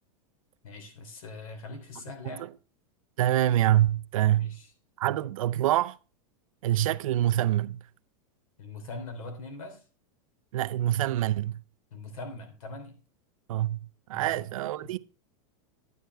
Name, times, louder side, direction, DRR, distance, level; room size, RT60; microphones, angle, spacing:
voice 1, 0.6-2.5 4.4-4.7 8.6-9.8 11.9-12.9 14.1-14.4 14.8-15.0, left 2 dB, 80° left, 3.2 m, -42 dB
voice 2, 3.2-4.6 5.0-6.0 6.6-7.8 10.5-11.6 13.5-13.8 14.1-15.0, right 13 dB, 80° right, 0.5 m, -25 dB
10.5 x 9.4 x 3.4 m
supercardioid pair, 170°, 17 cm